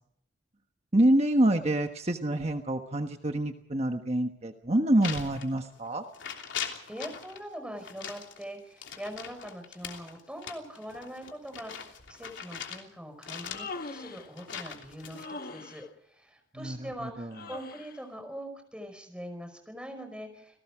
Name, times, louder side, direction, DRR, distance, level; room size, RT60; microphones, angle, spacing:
voice 1, 0.9-6.0 16.5-17.3, right 1 dB, 35° right, 5 dB, 1.3 m, -26 dB
sound 1, 5.0-5.9 6.1-7.4 7.8-12.9 13.2-15.3, left 7 dB, 85° left, 3.2 m, -40 dB
voice 2, 6.5-20.6, equal, 5° right, 6 dB, 5.2 m, -43 dB
Human voice, 13.3-14.3 15.1-15.9 17.3-18.0, left 3 dB, 50° left, 1.5 m, -41 dB
29.0 x 18.5 x 5.0 m, 0.69 s
head